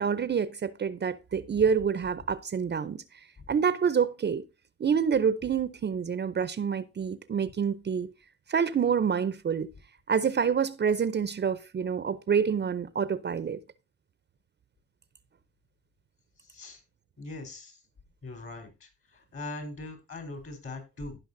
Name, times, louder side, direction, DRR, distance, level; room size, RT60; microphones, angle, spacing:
voice 1, 0.0-3.0 3.5-4.4 4.8-8.1 8.5-9.7 10.1-13.6, right 7 dB, 35° right, 0.6 m, -27 dB
voice 2, 16.4-16.8 17.2-17.8 18.2-21.2, left 2 dB, 45° left, 4.1 m, -41 dB
16.5 x 5.6 x 2.6 m
cardioid pair, 90°, 30 cm